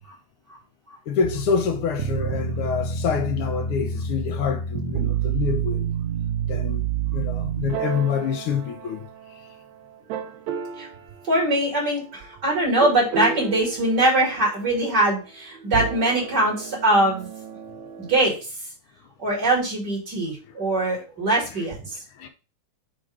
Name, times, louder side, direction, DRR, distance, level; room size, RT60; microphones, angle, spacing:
voice 1, 1.1-5.9 6.5-6.8 7.1-9.0 22.2-22.3, left 6 dB, 70° left, 1.3 m, -26 dB
sound 1, 1.2-9.5 10.1-11.0 12.8-14.5 15.6-18.2, right 7 dB, 80° right, 2.0 m, -29 dB
voice 2, 11.2-17.3 18.0-18.4 19.2-22.0, right 1 dB, 35° right, 2.6 m, -22 dB
6.1 x 3.4 x 4.9 m
omnidirectional pair, 3.4 m